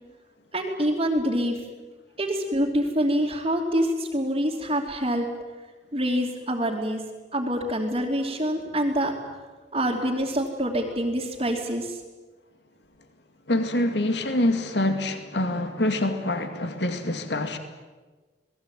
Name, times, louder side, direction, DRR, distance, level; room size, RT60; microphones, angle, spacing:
voice 1, 0.5-1.6 2.2-5.3 5.9-7.0 7.3-9.1 9.7-12.0, equal, 30° right, -5 dB, 2.9 m, -26 dB
voice 2, 13.5-17.6, left 1 dB, 75° left, 7 dB, 2.4 m, -25 dB
28.5 x 20.0 x 9.2 m, 1.3 s
head